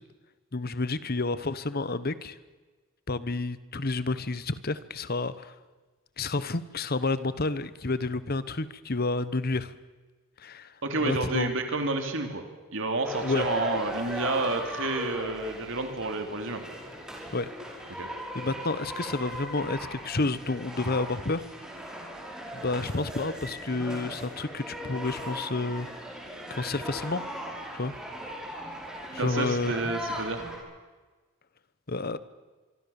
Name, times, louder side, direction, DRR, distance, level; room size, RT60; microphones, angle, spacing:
voice 1, 0.5-2.4 3.1-5.5 6.2-9.7 10.4-10.7 11.0-11.5 13.2-13.5 17.3-17.5 18.0-21.4 22.5-25.9 26.5-27.2 27.8-27.9 29.1-29.9 31.9-32.2, left 3 dB, 45° left, 15 dB, 1.1 m, -30 dB
voice 2, 10.8-12.4 12.7-16.6 18.0-18.1 29.2-30.4, right 2 dB, 60° right, 5 dB, 3.0 m, -30 dB
sound 1, 13.0-30.6, equal, 5° right, 5.6 m, -38 dB
25.5 x 24.0 x 7.2 m, 1.3 s
head